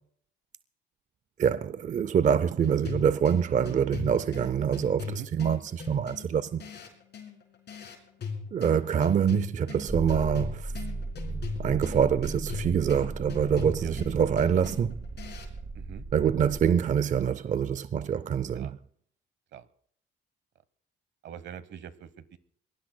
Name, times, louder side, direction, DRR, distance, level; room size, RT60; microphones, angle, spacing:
voice 1, 1.4-6.6 8.5-10.7 11.6-15.0 16.1-18.7, right 8 dB, 40° right, 0.5 m, -25 dB
sound 1, 2.6-15.6, left 5 dB, 60° left, 4.7 m, -40 dB
sound 2, 9.9-16.7, right 2 dB, 20° right, 2.4 m, -37 dB
voice 2, 15.7-16.1 18.5-18.7 19.5-19.7 21.2-22.4, right 9 dB, 65° right, 1.0 m, -43 dB
24.0 x 19.0 x 2.2 m
cardioid pair, 90°, 20 cm